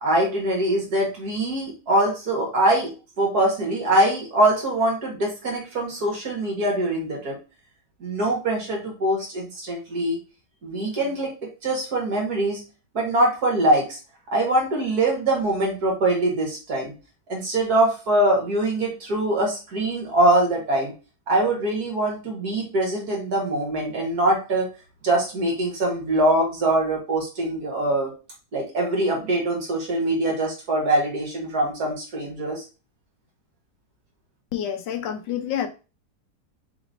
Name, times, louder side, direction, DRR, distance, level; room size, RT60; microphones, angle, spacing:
voice 1, 0.0-7.4 8.0-10.2 10.6-11.3 11.6-12.6 12.9-14.0 14.3-16.9 17.3-20.9 21.3-24.7 25.0-28.1 28.5-32.6, right 1 dB, 60° right, 2.1 m, -23 dB
voice 2, 34.5-35.7, left 9 dB, 90° left, 1.4 m, -28 dB
4.3 x 3.0 x 3.9 m
omnidirectional pair, 1.9 m